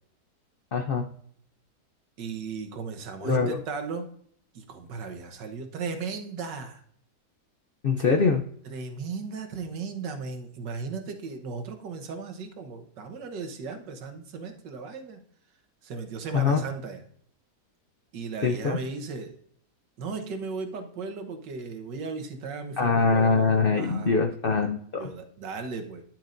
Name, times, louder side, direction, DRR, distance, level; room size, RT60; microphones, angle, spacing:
voice 1, 0.7-1.1 3.2-3.6 7.8-8.4 16.3-16.6 18.4-18.8 22.8-25.1, left 4 dB, 80° left, 5 dB, 0.5 m, -23 dB
voice 2, 2.2-4.1 4.5-6.8 8.7-15.2 15.8-17.0 18.1-19.4 20.0-24.2 24.9-26.0, right 4 dB, 80° right, 7 dB, 1.7 m, -36 dB
10.5 x 7.3 x 2.6 m, 0.63 s
omnidirectional pair, 1.9 m